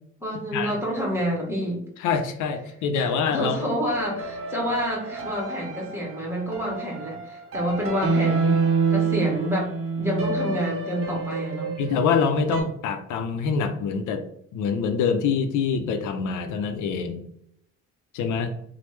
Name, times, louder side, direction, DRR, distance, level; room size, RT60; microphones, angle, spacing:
voice 1, 0.2-1.8 3.0-8.6 8.9-11.7, equal, 10° right, -1 dB, 1.1 m, -28 dB
voice 2, 2.0-3.6 11.8-14.2 14.5-17.2 18.1-18.5, left 5 dB, 80° left, 7 dB, 0.5 m, -25 dB
sound 1, 3.0-12.6, right 4 dB, 50° right, 0.7 m, -28 dB
3.2 x 2.0 x 3.0 m, 0.72 s
cardioid pair, 90°, 30 cm